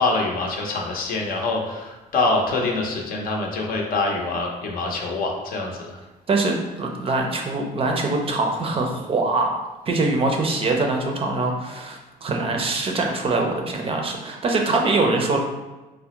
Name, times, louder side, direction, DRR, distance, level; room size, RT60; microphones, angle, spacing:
voice 1, 0.0-6.0, left 3 dB, 60° left, 0 dB, 0.6 m, -25 dB
voice 2, 6.3-9.5 9.9-15.4, right 3 dB, 35° right, 2 dB, 0.5 m, -23 dB
3.3 x 2.0 x 2.9 m, 1.1 s
cardioid pair, 110°, 17 cm